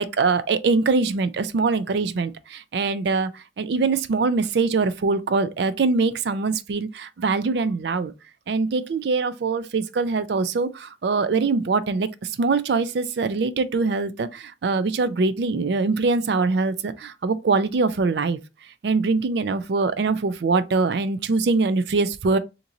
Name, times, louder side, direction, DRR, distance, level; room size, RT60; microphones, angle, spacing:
voice 1, 0.0-8.1 8.5-18.4 18.8-22.4, right 4 dB, 70° right, 0.4 m, -23 dB
2.9 x 2.5 x 3.8 m
head